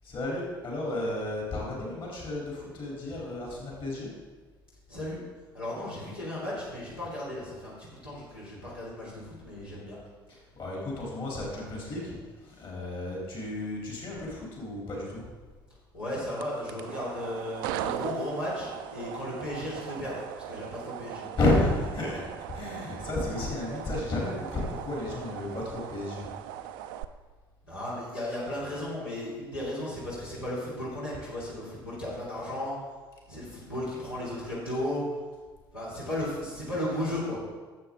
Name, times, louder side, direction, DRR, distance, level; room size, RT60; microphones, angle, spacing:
voice 1, 0.0-4.1 10.3-15.2 21.4-22.2 22.5-26.3 36.0-36.2, left 2 dB, 45° left, -3 dB, 3.3 m, -32 dB
voice 2, 4.9-5.2 5.5-10.0 15.9-21.2 27.7-32.7 33.3-35.0 35.7-37.4, left 1 dB, 85° left, -9 dB, 2.9 m, -35 dB
sound 1, 16.3-27.0, right 11 dB, 65° right, 0.5 m, -39 dB
12.0 x 7.4 x 3.8 m, 1.4 s
figure-of-eight pair, 60°, 12 cm